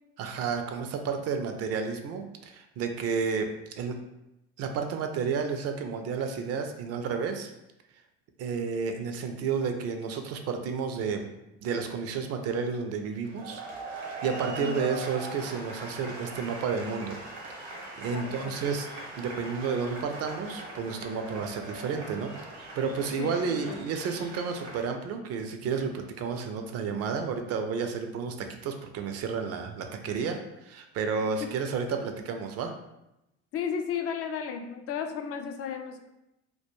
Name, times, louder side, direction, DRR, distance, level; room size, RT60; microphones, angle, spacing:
voice 1, 0.2-3.5 3.8-4.0 4.6-7.5 8.4-11.3 11.6-13.6 14.0-17.2 17.5-18.9 19.2-22.3 22.6-32.7, right 5 dB, 50° right, 6 dB, 0.4 m, -31 dB
sound 1, 13.2-24.9, right 2 dB, 85° right, 0.9 m, -41 dB
voice 2, 14.6-14.9 18.1-18.6 23.2-23.8 31.4-31.5 33.5-36.1, left 7 dB, 45° left, 5 dB, 0.4 m, -34 dB
2.2 x 2.2 x 2.9 m, 0.90 s
hypercardioid pair, 70°, 32 cm